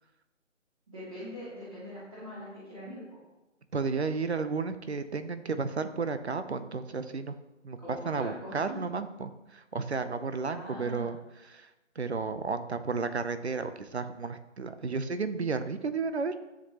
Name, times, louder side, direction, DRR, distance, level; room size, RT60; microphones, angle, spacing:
voice 1, 0.9-3.2 7.8-8.8 10.4-11.1, equal, 30° right, -10 dB, 2.6 m, -42 dB
voice 2, 3.7-7.4 7.6-11.2 11.4-11.7 12.0-16.4, right 4 dB, 60° right, 11 dB, 0.8 m, -33 dB
11.5 x 7.6 x 2.9 m, 1.0 s
figure-of-eight pair, 175°, 38 cm